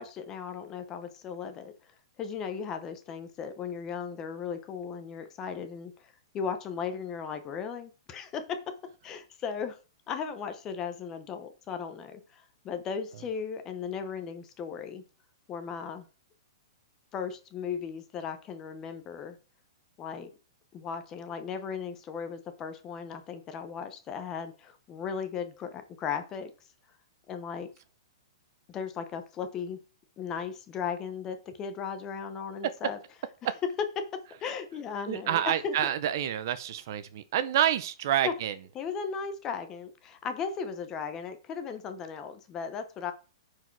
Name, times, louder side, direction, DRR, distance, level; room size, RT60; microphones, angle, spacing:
voice 1, 0.0-1.7 2.2-5.9 6.3-8.7 9.0-9.8 10.1-15.0 15.5-16.1 17.1-19.4 20.0-20.3 20.7-26.5 27.3-27.7 28.7-29.8 30.2-33.0 34.0-35.7 38.2-38.3 38.8-43.1, left 6 dB, 15° left, 0.8 m, -36 dB
voice 2, 35.1-38.5, right 11 dB, 40° right, 0.7 m, -28 dB
10.0 x 4.8 x 4.7 m
hypercardioid pair, 175°, 3 cm